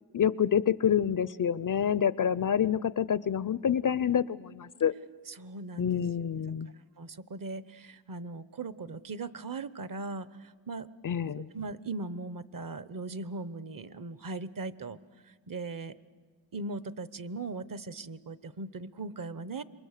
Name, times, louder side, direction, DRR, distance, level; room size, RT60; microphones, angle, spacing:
voice 1, 0.1-4.9 5.8-6.7 11.0-11.5, left 8 dB, 40° left, 18 dB, 0.6 m, -27 dB
voice 2, 5.3-5.9 7.0-10.9 11.5-15.0 15.5-15.9 16.5-19.6, right 3 dB, 40° right, 15 dB, 1.0 m, -39 dB
27.5 x 23.0 x 6.7 m, 1.5 s
cardioid pair, 60°, 50 cm